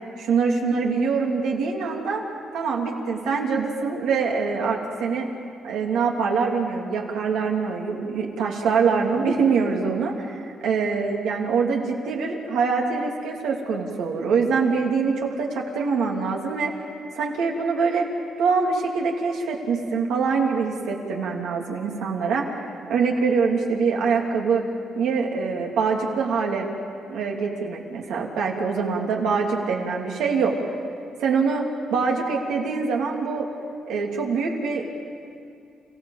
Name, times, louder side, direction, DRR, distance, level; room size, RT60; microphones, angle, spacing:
voice 1, 0.2-2.2 2.5-5.3 5.6-16.7 17.1-18.1 18.4-24.7 24.9-26.7 27.1-30.5 31.2-31.6 31.9-33.5 33.9-34.9, right 5 dB, 85° right, -1 dB, 3.2 m, -24 dB
29.5 x 16.0 x 7.5 m, 2.5 s
cardioid pair, 90°, 0 cm